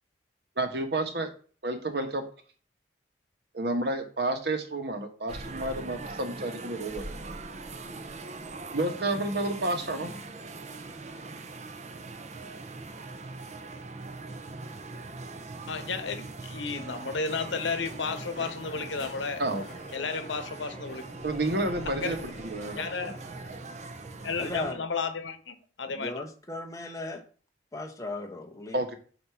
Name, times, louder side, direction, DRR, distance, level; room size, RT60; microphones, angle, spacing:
voice 1, 0.6-1.3 1.6-2.2 3.5-7.1 8.7-10.1 19.4-19.6 21.2-23.2 28.7-29.0, right 2 dB, 60° right, 1.1 m, -30 dB
sound 1, 5.3-24.7, right 3 dB, 40° right, 0.6 m, -41 dB
voice 2, 15.7-19.4 19.9-21.0 22.0-22.2 22.7-23.2 24.2-26.1, left 4 dB, 90° left, 0.9 m, -33 dB
Crowd, 17.3-23.6, equal, 45° left, 3.7 m, -47 dB
voice 3, 24.4-24.8 25.9-27.2 27.7-28.8, left 2 dB, 20° left, 0.9 m, -37 dB
8.1 x 2.8 x 5.7 m
head